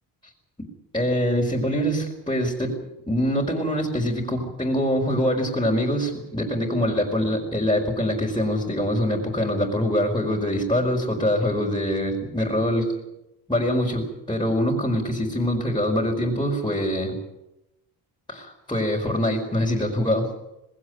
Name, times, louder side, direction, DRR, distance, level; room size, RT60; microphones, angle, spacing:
voice 1, 0.9-2.8 3.1-12.9 13.5-17.2 18.3-20.3, equal, 10° left, -3 dB, 5.0 m, -24 dB
19.5 x 16.5 x 9.5 m, 0.90 s
cardioid pair, 90°, 39 cm